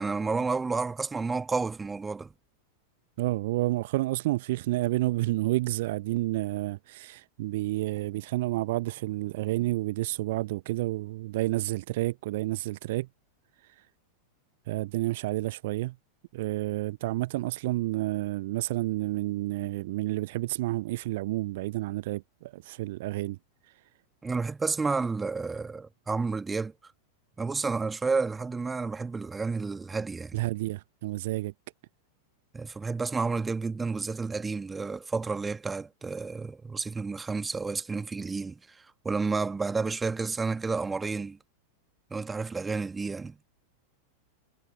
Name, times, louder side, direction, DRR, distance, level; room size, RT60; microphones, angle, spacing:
voice 1, 0.0-2.3 24.2-26.7 27.4-30.4 32.5-38.8 39.0-41.4 42.1-43.4, right 4 dB, 10° right, 1.8 m, -31 dB
voice 2, 3.2-13.1 13.8-13.9 14.7-16.0 16.3-23.4 30.3-31.5, right 18 dB, 50° right, 0.7 m, -30 dB
figure-of-eight pair, 90°, 0 cm